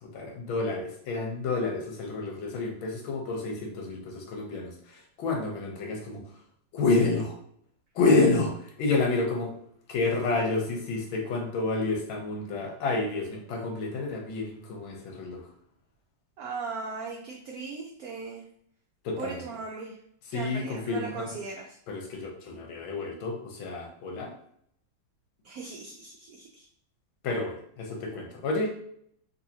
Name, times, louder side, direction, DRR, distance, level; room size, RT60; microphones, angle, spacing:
voice 1, 0.0-6.2 6.7-7.3 7.9-8.5 8.8-9.5 9.9-15.4 19.0-19.4 20.3-21.3 21.9-24.3 27.2-28.7, left 3 dB, 85° left, 1 dB, 1.6 m, -29 dB
voice 2, 16.4-18.4 19.2-20.0 20.3-21.8 25.4-26.7, right 4 dB, 85° right, 0 dB, 0.8 m, -38 dB
4.0 x 2.7 x 2.7 m, 0.67 s
omnidirectional pair, 2.2 m